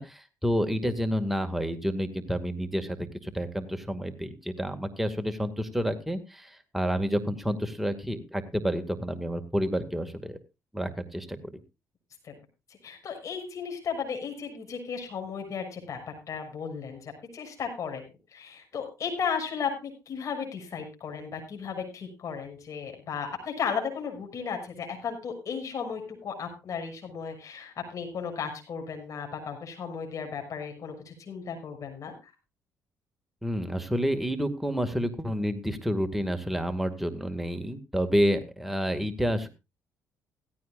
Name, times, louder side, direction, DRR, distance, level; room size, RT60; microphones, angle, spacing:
voice 1, 0.0-10.4 10.7-11.5 33.4-39.5, equal, 5° right, 7 dB, 2.2 m, -29 dB
voice 2, 12.8-16.0 16.3-18.0 18.3-32.1, left 6 dB, 55° left, 4 dB, 6.6 m, -35 dB
16.5 x 15.5 x 2.5 m, 0.27 s
cardioid pair, 75°, 6 cm